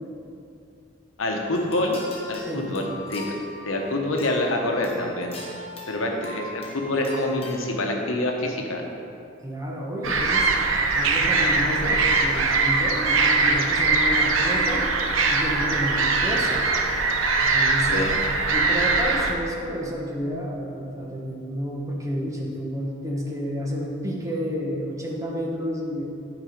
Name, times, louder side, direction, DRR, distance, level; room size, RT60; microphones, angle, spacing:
voice 1, 1.2-2.0 2.3-3.2 3.6-5.4 5.9-8.8 17.9-18.1, left 1 dB, 80° left, 1 dB, 1.1 m, -26 dB
sound 1, 1.4-7.7, left 1 dB, 30° left, 1.4 m, -40 dB
voice 2, 9.4-10.5 10.9-14.9 15.3-16.7 17.4-26.0, equal, 15° right, -3 dB, 1.2 m, -30 dB
sound 2, 10.0-19.3, right 3 dB, 75° right, 0.8 m, -22 dB
10.5 x 4.9 x 5.1 m, 2.6 s
head